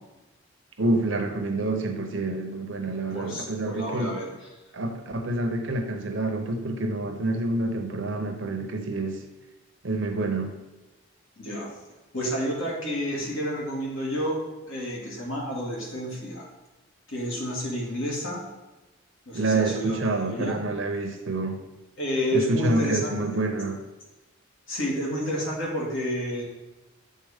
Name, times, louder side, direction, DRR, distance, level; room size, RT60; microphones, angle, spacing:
voice 1, 0.8-4.2 4.7-9.2 9.8-10.5 19.3-21.6 22.3-23.8, right 2 dB, 60° right, 5 dB, 0.8 m, -27 dB
voice 2, 3.1-4.3 11.4-11.7 12.1-14.4 14.7-16.5 17.1-18.4 19.3-20.6 22.0-23.4 24.7-26.4, equal, 65° left, -3 dB, 1.9 m, -30 dB
7.5 x 4.1 x 3.5 m, 1.1 s
head